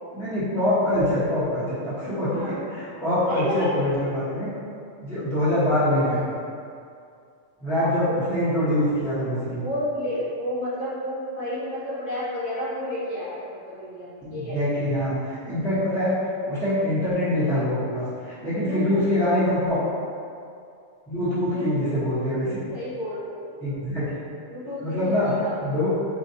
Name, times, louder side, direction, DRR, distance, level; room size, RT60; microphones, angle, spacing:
voice 1, 0.1-4.5 5.0-6.2 7.6-9.7 14.2-16.1 16.5-19.8 21.1-22.8 23.6-24.2 24.8-25.3 25.6-26.0, left 1 dB, ahead, -12 dB, 0.9 m, -24 dB
voice 2, 2.3-2.6 3.3-3.7 5.7-5.9 7.7-8.3 9.6-14.6 18.6-19.1 19.8-20.1 21.5-21.9 22.7-23.9 24.5-25.7, equal, 65° left, -11 dB, 1.4 m, -32 dB
4.5 x 2.4 x 2.7 m, 2.4 s
omnidirectional pair, 1.4 m